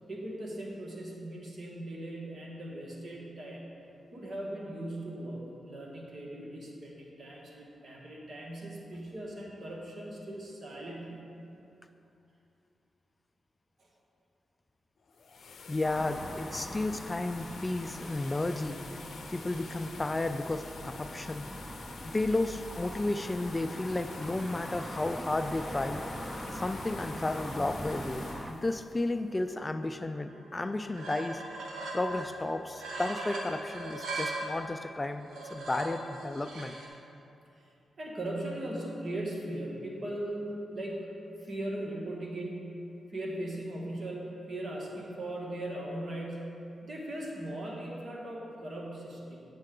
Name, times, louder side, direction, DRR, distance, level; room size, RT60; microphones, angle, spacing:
voice 1, 0.1-3.7 4.1-11.2 13.8-13.9 32.8-32.9 37.5-37.7 38.0-41.1 41.4-42.8 43.1-49.4, right 1 dB, 50° right, -2 dB, 1.7 m, -39 dB
sound 1, 15.0-29.9, left 4 dB, 65° left, 0.6 m, -48 dB
voice 2, 15.7-18.8 19.3-21.5 22.0-26.0 26.5-31.5 31.9-36.8, left 2 dB, 25° left, 8 dB, 0.3 m, -33 dB
sound 2, 15.8-28.5, equal, 5° right, 0.7 m, -42 dB
sound 3, 30.3-30.4 30.6-32.4 32.7-34.6 35.2-36.9, right 2 dB, 80° right, 1.2 m, -39 dB
8.9 x 7.4 x 3.8 m, 2.7 s
cardioid pair, 65°, 0 cm